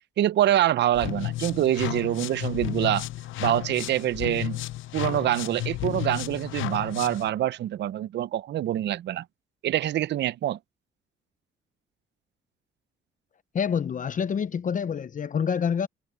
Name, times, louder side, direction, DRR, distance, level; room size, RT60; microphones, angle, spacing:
voice 1, 0.2-3.1 3.4-4.6 4.9-9.2 9.6-10.6, right 12 dB, 60° right, 0.6 m, -25 dB
sound 1, 0.9-7.3, left 16 dB, 80° left, 0.6 m, -33 dB
voice 2, 13.5-15.9, left 7 dB, 40° left, 0.7 m, -27 dB
cardioid pair, 90°, 20 cm